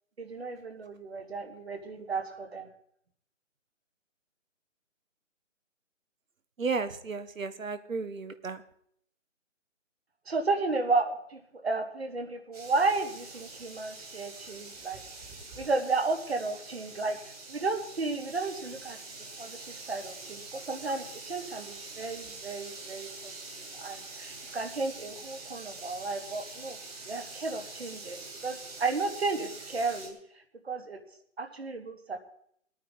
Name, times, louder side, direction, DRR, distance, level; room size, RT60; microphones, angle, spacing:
voice 1, 0.2-2.7 10.3-15.0 15.6-17.2 17.5-19.0 19.4-19.6 19.9-23.3 23.7-26.8 27.1-30.2 30.7-31.0 31.4-32.2, right 3 dB, 50° right, 6 dB, 1.8 m, -33 dB
voice 2, 6.6-8.6, right 4 dB, 85° right, 12 dB, 1.3 m, -33 dB
sound 1, 12.5-30.1, right 3 dB, 30° right, 3.3 m, -45 dB
20.5 x 9.2 x 4.0 m, 0.69 s
hypercardioid pair, 175°, 39 cm